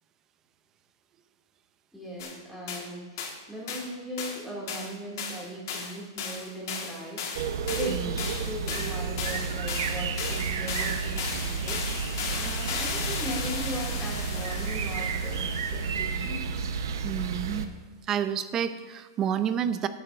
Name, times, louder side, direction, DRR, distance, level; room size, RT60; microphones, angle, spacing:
voice 1, 1.9-7.3 7.7-11.8 12.3-16.4, equal, ahead, -5 dB, 2.3 m, -38 dB
sound 1, 2.2-2.3 2.7-2.9 3.2-3.4 3.7-3.9 4.2-4.4 4.7-16.2, left 6 dB, 55° left, 1.6 m, -36 dB
sound 2, 7.3-17.7, right 6 dB, 75° right, 0.8 m, -31 dB
voice 2, 7.9-8.3 17.0-17.8 18.1-19.9, right 9 dB, 20° right, 12 dB, 0.4 m, -29 dB
16.5 x 9.0 x 2.5 m, 1.3 s
supercardioid pair, 160°, 2 cm